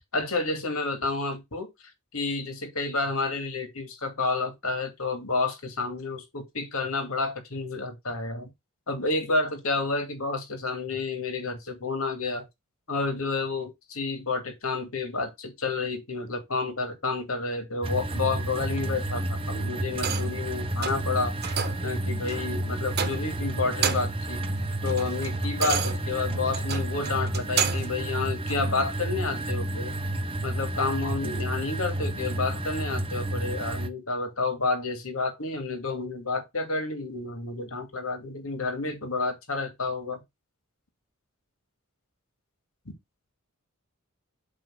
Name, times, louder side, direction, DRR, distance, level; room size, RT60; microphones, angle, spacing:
voice 1, 0.1-1.7 2.1-8.5 8.9-12.4 12.9-21.3 21.8-24.4 24.8-30.0 30.4-40.2, left 3 dB, 75° left, 2.5 m, -30 dB
sound 1, 17.8-33.9, right 1 dB, 25° right, 0.8 m, -31 dB
sound 2, 19.9-20.4 20.8-21.1 21.4-21.9 22.3-22.5 22.9-23.4 23.7-24.2 24.6-28.0 28.5-28.6, right 7 dB, 50° right, 1.1 m, -31 dB
7.8 x 3.4 x 6.3 m
head